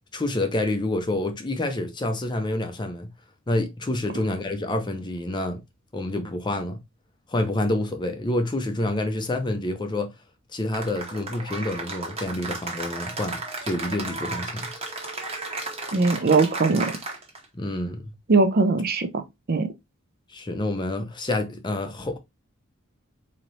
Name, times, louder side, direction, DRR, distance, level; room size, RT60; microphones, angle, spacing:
voice 1, 0.1-3.1 3.5-5.6 5.9-6.8 7.3-10.1 10.5-14.7 17.6-18.1 20.3-22.2, left 1 dB, 20° left, 0.5 m, -28 dB
Cheering / Applause, 10.7-17.5, right 3 dB, 30° right, 0.9 m, -34 dB
voice 2, 15.9-16.9 18.3-19.2 19.5-19.7, right 3 dB, 45° right, 0.5 m, -20 dB
3.9 x 2.9 x 3.1 m
head